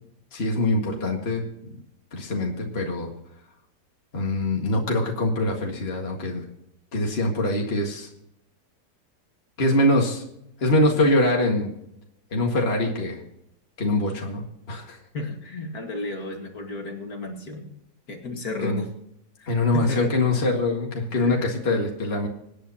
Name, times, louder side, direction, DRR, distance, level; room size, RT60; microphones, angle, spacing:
voice 1, 0.3-1.4 2.1-3.1 4.1-6.4 6.9-8.1 9.6-10.2 10.6-11.7 12.3-13.2 13.8-14.4 14.7-15.0 18.6-18.8 19.5-22.3, left 1 dB, 35° left, 0 dB, 2.1 m, -23 dB
voice 2, 15.1-17.8 18.1-18.9 19.4-20.1 21.1-21.5, left 2 dB, 60° left, 2 dB, 2.5 m, -33 dB
26.0 x 9.3 x 2.9 m, 0.80 s
omnidirectional pair, 1.9 m